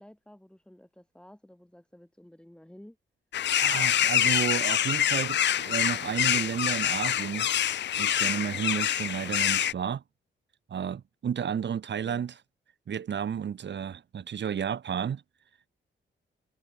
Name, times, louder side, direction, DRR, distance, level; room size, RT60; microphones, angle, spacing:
voice 1, 0.0-3.0 12.0-12.3, left 1 dB, 5° left, 7.0 m, -52 dB
sound 1, 3.3-9.7, left 11 dB, 60° left, 0.6 m, -26 dB
voice 2, 3.6-7.5 8.0-10.0 10.7-12.3 12.9-15.2, right 8 dB, 60° right, 3.4 m, -32 dB
cardioid pair, 115°, 20 cm